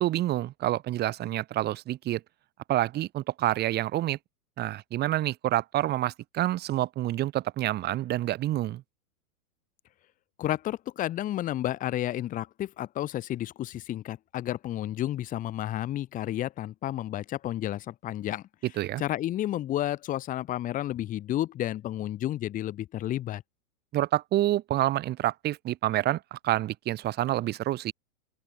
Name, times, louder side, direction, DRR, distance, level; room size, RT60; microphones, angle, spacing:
voice 1, 0.0-2.2 2.7-4.2 4.6-8.8 18.8-19.0 23.9-27.9, right 14 dB, 20° right, 6.4 m, -28 dB
voice 2, 10.4-18.4 19.0-23.4, left 13 dB, 15° left, 2.3 m, -31 dB
open air
supercardioid pair, 170°, 45 cm